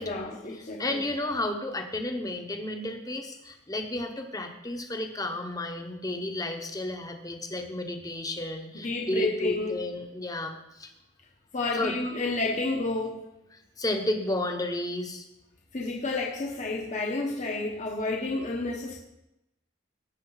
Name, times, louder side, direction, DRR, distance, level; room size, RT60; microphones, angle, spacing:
voice 1, 0.0-1.0 8.8-9.8 11.5-13.2 15.7-19.0, left 2 dB, 40° left, 0 dB, 1.1 m, -30 dB
voice 2, 0.8-10.9 11.7-11.9 13.5-15.2, left 1 dB, 20° left, 5 dB, 1.0 m, -32 dB
15.5 x 6.6 x 4.0 m, 0.87 s
head